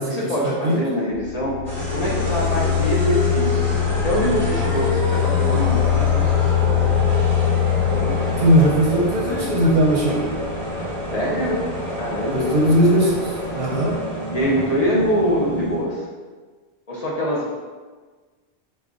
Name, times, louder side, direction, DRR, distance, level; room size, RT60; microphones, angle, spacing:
voice 1, 0.0-6.5 7.9-8.3 11.1-11.6 12.0-12.6 14.3-16.0 16.9-17.5, equal, 40° left, -5 dB, 0.7 m, -24 dB
voice 2, 0.6-1.0 8.4-10.3 12.3-13.2 13.5-14.0, equal, 55° right, -2 dB, 0.8 m, -18 dB
sound 1, 1.1-13.9, left 11 dB, 75° left, 1.0 m, -24 dB
sound 2, 1.7-15.9, right 1 dB, ahead, 1.2 m, -28 dB
4.6 x 2.3 x 3.8 m, 1.4 s
omnidirectional pair, 1.1 m